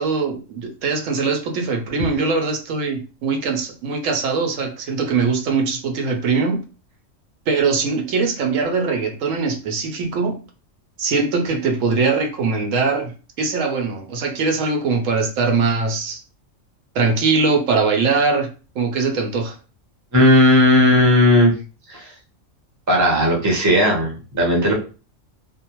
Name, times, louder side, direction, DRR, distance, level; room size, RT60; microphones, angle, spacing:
voice 1, 0.0-6.6 7.5-10.4 11.0-13.1 13.4-16.2 16.9-18.5 18.8-19.5, right 4 dB, 80° right, 4 dB, 1.0 m, -21 dB
voice 2, 20.1-21.5 21.9-22.1 22.9-24.7, left 1 dB, 20° right, -1 dB, 0.6 m, -15 dB
2.6 x 2.0 x 2.8 m, 0.34 s
omnidirectional pair, 1.3 m